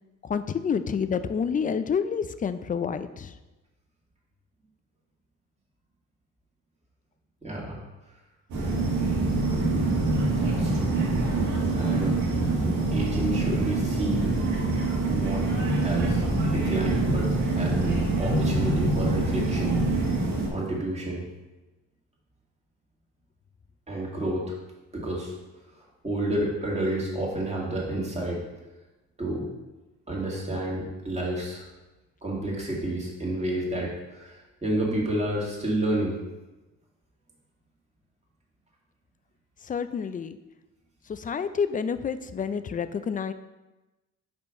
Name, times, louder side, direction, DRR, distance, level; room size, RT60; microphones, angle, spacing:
voice 1, 0.2-3.3 39.6-40.4 41.1-43.3, left 6 dB, 30° left, 11 dB, 0.4 m, -28 dB
voice 2, 7.4-7.8 10.4-11.0 11.7-12.2 12.9-14.4 15.1-15.5 15.8-20.1 20.5-21.3 23.9-24.6 24.9-25.3 26.0-28.4 29.2-29.4 30.1-31.7 32.2-36.2, right 1 dB, 20° right, -3 dB, 2.1 m, -30 dB
sound 1, 8.5-20.5, right 2 dB, 75° right, 1.7 m, -25 dB
5.6 x 4.5 x 5.2 m, 1.1 s
cardioid pair, 90°, 30 cm